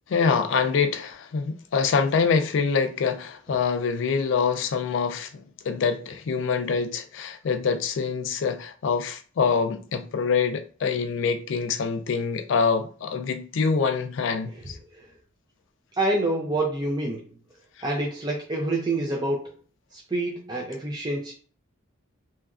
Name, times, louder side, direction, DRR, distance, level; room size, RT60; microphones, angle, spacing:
voice 1, 0.1-14.8, left 5 dB, 60° left, 0.3 m, -25 dB
voice 2, 14.6-15.1 16.0-17.3 17.8-19.5 19.9-21.3, right 2 dB, 20° right, 0.3 m, -27 dB
2.8 x 2.3 x 2.3 m
head